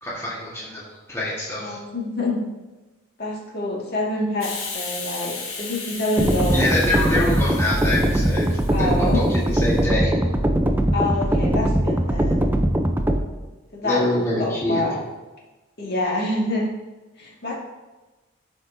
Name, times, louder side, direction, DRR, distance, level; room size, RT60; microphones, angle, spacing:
voice 1, 0.0-1.8 6.5-10.1 13.8-14.8, left 1 dB, 15° left, -6 dB, 1.4 m, -25 dB
voice 2, 1.6-2.4 3.2-7.4 8.7-9.2 10.9-12.6 13.7-14.1 14.4-14.9 15.8-16.7 17.2-17.6, left 1 dB, 50° left, -4 dB, 1.9 m, -26 dB
Hiss, 4.4-9.8, left 4 dB, 80° left, 1.4 m, -36 dB
sound 1, 6.2-13.2, right 1 dB, 10° right, 0.4 m, -21 dB
11.5 x 5.1 x 2.6 m, 1.2 s
head